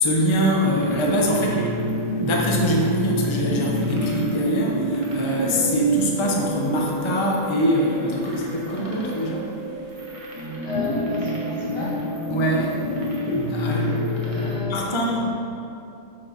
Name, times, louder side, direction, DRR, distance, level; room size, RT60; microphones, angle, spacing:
voice 1, 0.0-1.7 2.0-9.5 12.3-12.8 13.5-14.0 14.6-15.3, equal, 20° left, -2 dB, 0.8 m, -24 dB
sound 1, 0.6-14.6, equal, 20° right, 1.2 m, -27 dB
voice 2, 10.6-12.0 14.2-15.2, left 3 dB, 80° left, -7 dB, 2.6 m, -33 dB
8.6 x 6.9 x 4.4 m, 2.7 s
omnidirectional pair, 1.8 m